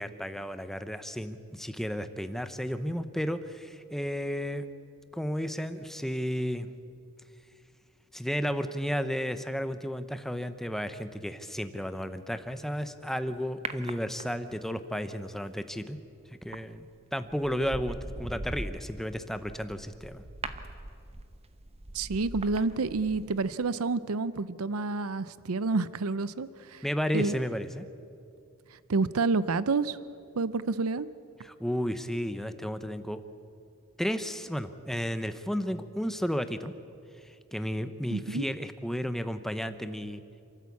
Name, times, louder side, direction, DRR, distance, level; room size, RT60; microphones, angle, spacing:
voice 1, 0.0-4.7 5.1-6.7 8.1-16.0 16.4-16.9 17.1-20.2 26.8-27.9 31.4-33.2 34.0-36.7 37.2-40.2, equal, ahead, 10 dB, 0.8 m, -33 dB
sound 1, 13.6-14.7 16.5-16.8 17.3-23.5 23.8-23.9, right 2 dB, 30° right, 0.9 m, -41 dB
voice 2, 21.9-26.8 27.1-27.3 28.7-30.0 30.4-31.1 38.1-38.5, right 3 dB, 75° right, 16 dB, 0.6 m, -29 dB
28.0 x 13.5 x 8.5 m, 2.5 s
head